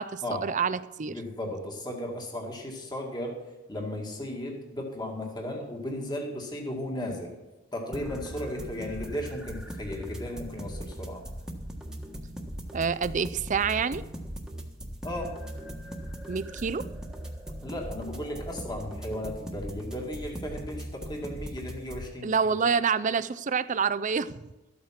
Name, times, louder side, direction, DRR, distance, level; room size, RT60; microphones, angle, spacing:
voice 1, 0.0-1.2 12.7-14.0 16.3-16.9 22.2-24.4, right 6 dB, 40° right, 14 dB, 0.5 m, -27 dB
voice 2, 1.0-3.4 3.7-7.3 7.7-11.2 15.0-15.3 17.6-22.3, left 1 dB, 20° left, 1 dB, 2.1 m, -35 dB
sound 1, 7.9-22.1, equal, 5° right, 1.4 m, -39 dB
13.5 x 8.6 x 5.9 m, 1.1 s
head